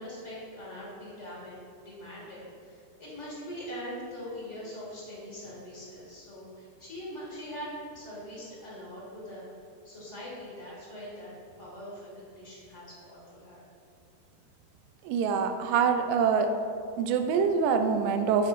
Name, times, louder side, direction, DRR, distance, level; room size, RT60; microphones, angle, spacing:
voice 1, 0.0-9.5 9.8-11.3 11.6-13.6, equal, 30° left, -6 dB, 1.5 m, -42 dB
voice 2, 15.0-16.5 17.0-18.5, right 6 dB, 80° right, 7 dB, 2.2 m, -25 dB
9.3 x 6.9 x 2.5 m, 2.5 s
omnidirectional pair, 4.0 m